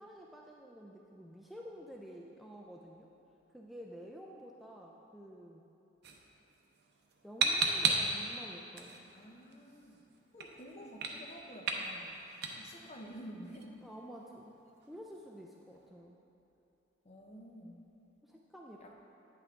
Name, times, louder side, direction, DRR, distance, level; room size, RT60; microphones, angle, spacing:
voice 1, 0.0-3.1 3.5-5.7 7.2-9.0 13.8-14.5 14.9-16.2 18.2-18.9, equal, ahead, -2 dB, 0.3 m, -50 dB
sound 1, 6.0-15.9, right 4 dB, 60° right, 0.6 m, -38 dB
voice 2, 7.7-8.0 9.1-10.0 10.3-13.7 17.0-17.8 18.8-18.9, equal, 35° left, 1 dB, 0.7 m, -50 dB
8.9 x 5.8 x 3.6 m, 2.9 s
head